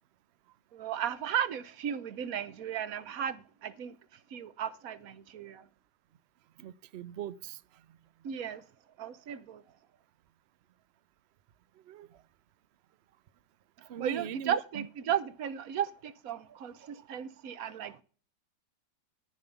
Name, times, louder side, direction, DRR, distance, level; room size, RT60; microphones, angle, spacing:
voice 1, 0.7-5.7 8.2-8.6 9.0-9.6 13.8-18.0, right 9 dB, 60° right, 1.2 m, -35 dB
voice 2, 6.6-7.6 11.9-12.1 13.9-14.9, right 9 dB, 90° right, 0.5 m, -40 dB
13.5 x 5.3 x 6.9 m
omnidirectional pair, 1.9 m